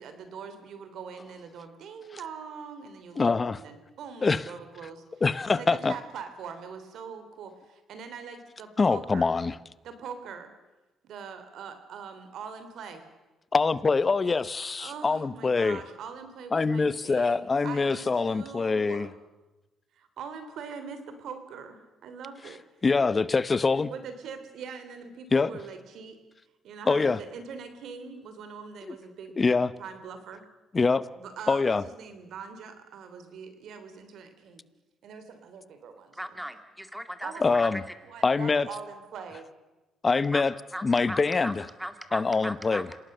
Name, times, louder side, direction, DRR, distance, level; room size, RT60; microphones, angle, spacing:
voice 1, 0.0-5.0 5.5-9.3 9.8-10.5 11.0-13.0 14.8-19.1 19.9-22.6 23.0-23.1 23.9-26.2 26.6-29.4 29.8-30.4 31.2-34.6 35.0-36.5 37.2-39.5, right 6 dB, 75° right, 9 dB, 3.2 m, -42 dB
voice 2, 3.2-3.6 4.2-4.4 5.2-5.9 8.8-9.5 13.5-15.8 16.5-19.1 22.8-23.9 25.3-25.5 26.9-27.2 28.9-29.0 29.4-29.7 30.7-31.0 31.5-31.8 37.4-37.8 38.2-38.7 40.0-40.5 40.8-41.7 42.1-42.9, left 4 dB, 30° left, 17 dB, 0.9 m, -24 dB
voice 3, 36.2-37.8 40.3-40.4 40.7-41.5 41.8-42.9, equal, 5° right, 9 dB, 2.2 m, -37 dB
27.0 x 18.5 x 6.7 m, 1.1 s
cardioid pair, 90°, 0 cm